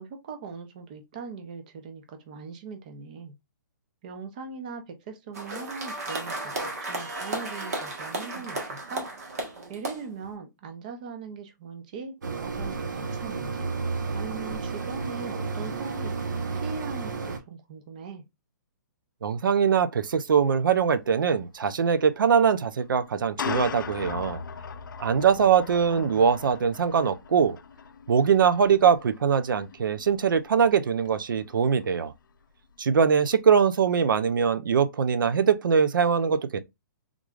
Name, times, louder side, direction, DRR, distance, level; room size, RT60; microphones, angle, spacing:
voice 1, 0.0-3.3 4.0-9.1 9.7-13.7 14.1-18.2 25.4-26.2, right 5 dB, 25° right, 0.5 m, -40 dB
sound 1, 5.3-10.3, right 2 dB, 50° right, 1.2 m, -34 dB
sound 2, 12.2-17.4, right 4 dB, 65° right, 0.8 m, -32 dB
voice 2, 19.2-24.4 25.0-27.6 28.1-32.1 32.8-36.6, right 7 dB, 90° right, 0.5 m, -22 dB
sound 3, 20.0-20.1 20.4-20.6 21.9-22.0 23.0-32.2, left 6 dB, 75° left, 0.5 m, -39 dB
3.7 x 3.1 x 2.3 m
hypercardioid pair, 175°, 11 cm